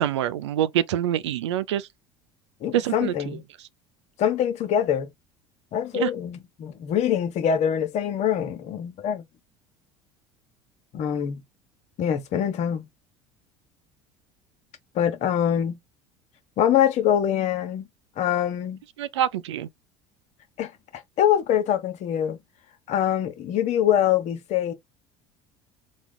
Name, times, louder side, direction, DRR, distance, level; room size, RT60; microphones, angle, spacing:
voice 1, 0.0-1.8 2.7-3.1 5.9-6.1 19.0-19.7, right 11 dB, 75° right, 0.5 m, -25 dB
voice 2, 2.6-3.4 4.2-5.1 5.7-9.3 10.9-11.4 12.0-12.8 14.9-15.8 16.6-17.9 18.2-18.8 20.6-22.4 22.9-24.7, left 9 dB, 50° left, 1.1 m, -24 dB
4.1 x 2.4 x 3.7 m
hypercardioid pair, 65°, 15 cm